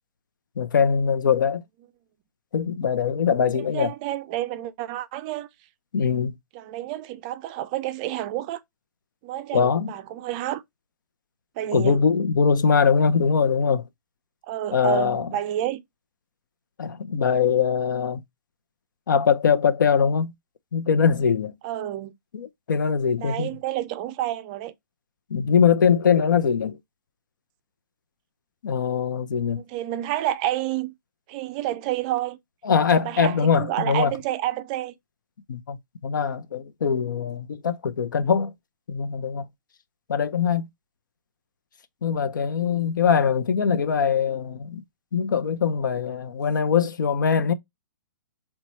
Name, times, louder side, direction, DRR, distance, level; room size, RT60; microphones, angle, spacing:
voice 1, 0.6-1.6 2.5-3.9 5.9-6.4 9.5-9.9 11.7-13.8 14.7-15.3 16.8-18.2 19.1-20.3 20.7-21.5 22.3-23.5 25.3-26.8 28.6-29.6 32.6-34.1 35.5-35.8 36.0-38.5 38.9-39.4 40.1-40.7 42.0-44.8 45.1-47.5, left 6 dB, 85° left, 0.6 m, -22 dB
voice 2, 3.7-5.5 6.5-8.6 9.2-10.6 11.6-12.0 14.5-15.8 21.6-22.1 23.2-24.7 29.6-30.9 31.3-32.4 32.9-34.9, right 13 dB, 25° right, 0.3 m, -29 dB
4.5 x 2.3 x 4.0 m
hypercardioid pair, 160°, 10 cm